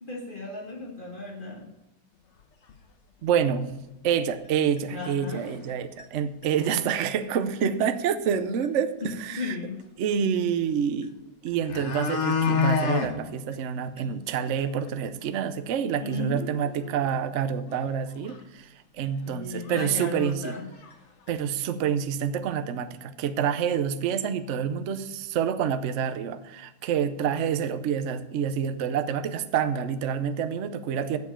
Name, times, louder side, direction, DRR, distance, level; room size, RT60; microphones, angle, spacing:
voice 1, 0.0-1.7 4.9-5.6 8.3-8.5 9.0-9.8 16.0-17.0 19.2-20.6, left 3 dB, 30° left, -2 dB, 1.8 m, -36 dB
sound 1, 2.7-2.8 3.3-3.4 3.7-3.8 4.8-4.9 5.4-5.7 6.0-6.1 6.4-6.8 8.3-8.4 8.6-8.7 11.0-11.1 11.5-13.1 13.5-13.6 14.0-14.1 14.5-14.6 14.9-15.0 17.8-17.9 18.2-18.4 19.1-19.2 19.7-19.9 20.1-20.9 21.3-21.4, left 5 dB, 50° left, 1.1 m, -28 dB
voice 2, 3.2-3.7 4.0-9.6 10.0-11.1 11.4-20.6 21.3-31.2, right 8 dB, 60° right, 10 dB, 0.8 m, -27 dB
8.3 x 7.0 x 8.5 m, 0.95 s
omnidirectional pair, 1.8 m